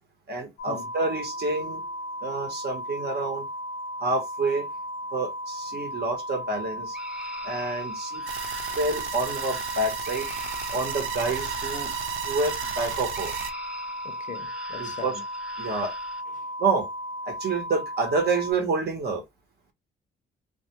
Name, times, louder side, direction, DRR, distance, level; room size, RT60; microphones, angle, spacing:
voice 1, 0.3-1.8 2.2-3.5 4.0-4.7 5.1-7.0 7.4-8.2 8.8-10.3 10.7-11.9 12.2-13.3 14.8-15.1 15.6-15.9 16.6-16.9 17.3-19.2, right 3 dB, 55° right, 1.0 m, -28 dB
sound 1, 0.6-18.5, equal, 90° left, 0.6 m, -35 dB
sound 2, 6.9-16.2, equal, 5° right, 0.6 m, -44 dB
sound 3, 8.3-13.5, right 9 dB, 80° right, 0.5 m, -34 dB
voice 2, 14.0-15.2 16.3-16.5, left 7 dB, 40° left, 0.5 m, -41 dB
2.3 x 2.2 x 2.9 m
cardioid pair, 90°, 20 cm